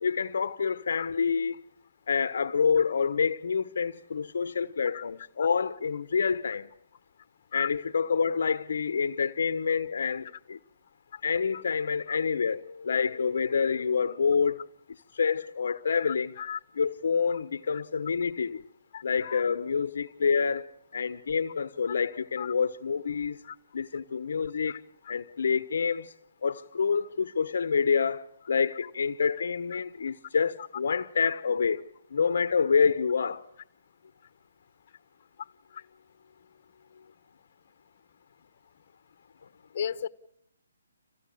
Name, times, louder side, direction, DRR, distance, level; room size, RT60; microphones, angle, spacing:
voice 1, 0.0-1.6 2.1-6.7 7.5-10.6 11.2-16.4 16.8-18.6 19.0-23.4 23.7-24.8 25.1-26.1 26.4-31.8 32.1-33.4, left 6 dB, 65° left, 1.0 m, -27 dB
voice 2, 16.1-16.6 18.9-19.4 22.4-22.5 23.4-23.5 24.7-24.8 35.7-35.8 39.7-40.1, left 8 dB, 40° left, 1.3 m, -35 dB
27.0 x 16.0 x 8.6 m
hypercardioid pair, 155°, 0 cm